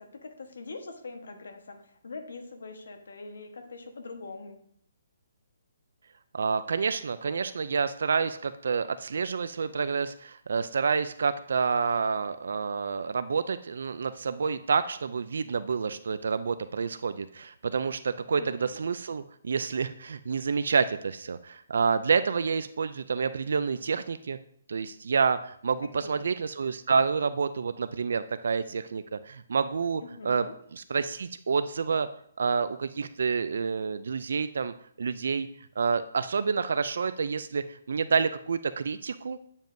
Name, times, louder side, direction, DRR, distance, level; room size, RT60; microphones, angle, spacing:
voice 1, 0.0-4.6 18.4-18.8 26.0-26.3 30.0-30.5, left 3 dB, 75° left, 5 dB, 1.2 m, -43 dB
voice 2, 6.3-24.4 24.7-30.5 30.7-32.1 32.4-35.5 35.8-39.4, right 5 dB, 65° right, 12 dB, 0.3 m, -28 dB
9.1 x 7.1 x 2.6 m, 0.67 s
hypercardioid pair, 170°, 0 cm